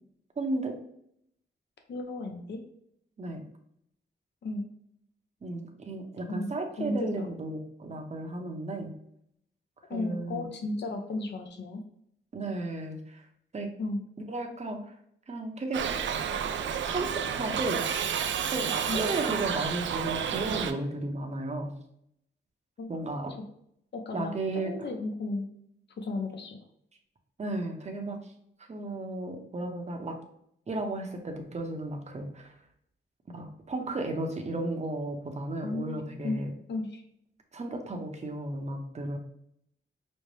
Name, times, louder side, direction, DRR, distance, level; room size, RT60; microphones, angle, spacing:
voice 1, 0.4-0.8 3.2-3.4 5.4-8.9 9.9-10.4 12.3-13.3 13.5-13.7 14.3-14.9 15.3-15.8 16.8-17.8 18.5-21.7 22.9-23.4 24.1-24.7 27.4-28.3 28.7-30.2 30.7-32.5 33.3-36.5 37.5-39.2, right 2 dB, 35° right, 3 dB, 0.7 m, -34 dB
voice 2, 1.9-2.6 4.4-4.7 6.3-6.5 6.8-7.3 9.9-11.8 13.8-14.0 18.9-19.0 22.8-23.2 23.9-25.5 26.0-26.6 35.6-36.4 36.7-37.0, left 2 dB, 60° left, 4 dB, 0.7 m, -34 dB
Shout / Livestock farm animals working animals, 15.7-20.7, right 8 dB, 70° right, 0.4 m, -30 dB
5.2 x 2.1 x 3.2 m, 0.72 s
cardioid pair, 75°, 20 cm